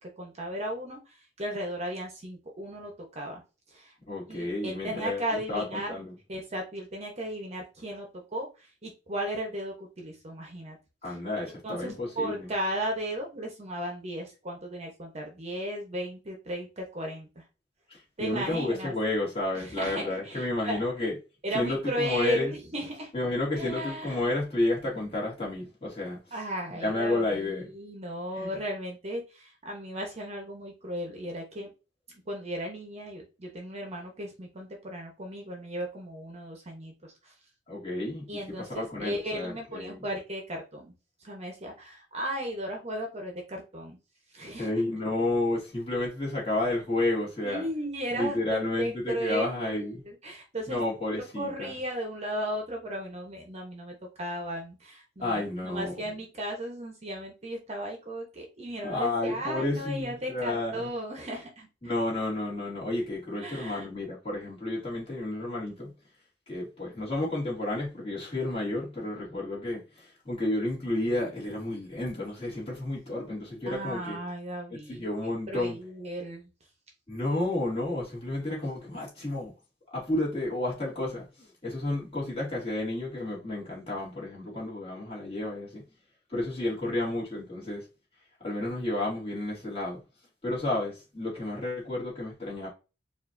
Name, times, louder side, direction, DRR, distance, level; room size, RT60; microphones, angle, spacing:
voice 1, 0.0-3.4 3.7-3.9 4.3-6.0 6.3-10.8 11.6-17.4 18.2-18.9 19.5-20.8 21.4-23.1 23.5-24.2 26.3-31.7 32.1-37.3 38.3-40.9 41.2-44.0 44.3-44.7 47.4-50.8 51.1-61.7 63.4-64.0 73.7-75.1 75.5-76.5, equal, 35° right, 1.0 m, -35 dB
voice 2, 4.1-6.1 11.0-12.5 17.9-21.1 21.5-22.5 23.1-26.2 26.7-27.6 28.4-28.5 37.7-40.0 44.6-47.7 48.1-50.0 50.7-51.7 55.2-55.9 58.8-60.9 61.8-65.9 66.5-74.2 74.9-75.8 77.1-79.5 79.9-85.8 86.3-87.8 88.4-90.0 90.4-92.7, left 2 dB, 30° left, 2.2 m, -31 dB
4.7 x 2.7 x 2.6 m
head